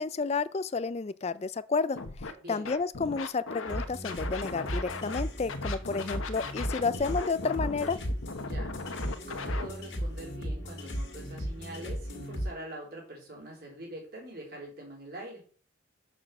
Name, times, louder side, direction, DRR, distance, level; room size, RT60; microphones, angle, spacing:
voice 1, 0.0-8.0, left 4 dB, 30° left, 0.4 m, -31 dB
Scratching (performance technique), 1.9-2.3 2.6-5.2 5.5-9.7, left 4 dB, 90° left, 1.0 m, -38 dB
voice 2, 2.4-2.7 8.4-15.4, right 1 dB, 50° right, 3.8 m, -44 dB
sound 1, 3.7-12.5, equal, 60° left, 2.2 m, -36 dB
6.3 x 6.2 x 6.5 m
head